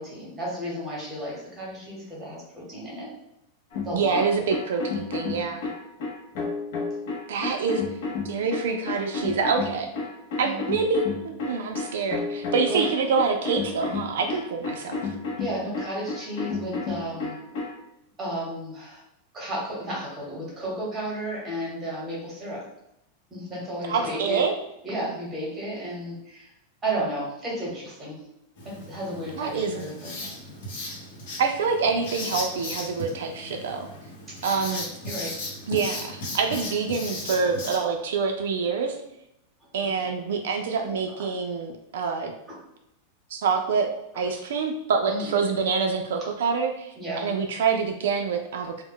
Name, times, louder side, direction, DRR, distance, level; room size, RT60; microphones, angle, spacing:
voice 1, 0.0-3.1 3.8-4.3 10.4-10.6 12.7-12.8 15.4-17.4 18.2-19.0 19.3-22.6 23.3-24.4 24.8-26.5 26.8-28.2 28.6-30.1 34.3-34.6 35.0-35.3 40.0-40.1 41.2-41.3 45.1-45.3 47.0-47.3, right 1 dB, 10° right, -5 dB, 0.9 m, -33 dB
sound 1, 3.7-17.8, left 4 dB, 50° left, 0.6 m, -32 dB
voice 2, 3.9-5.7 7.3-7.8 8.2-9.9 10.4-15.0 23.9-24.5 29.4-30.3 31.4-33.9 34.4-34.9 35.7-39.0 39.7-42.3 43.3-43.9 44.1-48.8, right 5 dB, 80° right, 3 dB, 0.3 m, -26 dB
Writing, 28.6-37.8, left 1 dB, 70° left, 0.9 m, -36 dB
2.1 x 2.0 x 3.6 m, 0.82 s
supercardioid pair, 165°, 0 cm